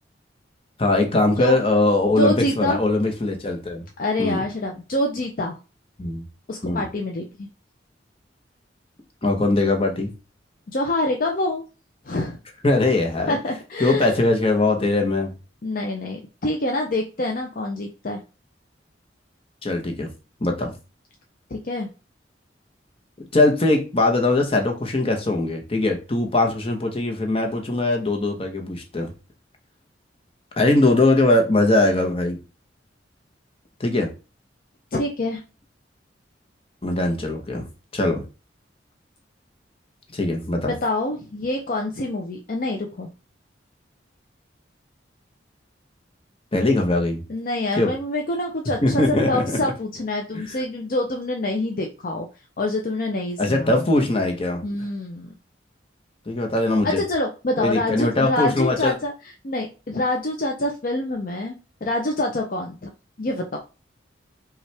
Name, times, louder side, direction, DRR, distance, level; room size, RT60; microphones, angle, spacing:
voice 1, 0.8-3.8 4.2-4.4 6.0-6.2 6.6-6.8 9.2-10.1 12.6-13.4 13.8-15.3 19.6-20.1 20.4-20.7 23.3-29.1 30.6-32.4 33.8-34.1 36.8-37.7 37.9-38.2 40.1-40.7 46.5-47.2 47.8-47.9 48.8-49.4 50.3-50.6 53.4-54.6 56.3-57.0 57.6-58.9, left 2 dB, 30° left, 0.9 m, -21 dB
voice 2, 2.1-2.8 4.0-5.5 6.5-7.5 10.7-11.6 12.0-12.4 13.3-14.1 15.6-18.2 21.5-21.9 34.9-35.4 40.6-43.1 47.3-52.3 52.6-53.8 54.6-55.3 56.8-59.1 59.4-62.9 63.2-63.6, left 1 dB, 50° left, 0.5 m, -26 dB
5.4 x 2.4 x 3.3 m
head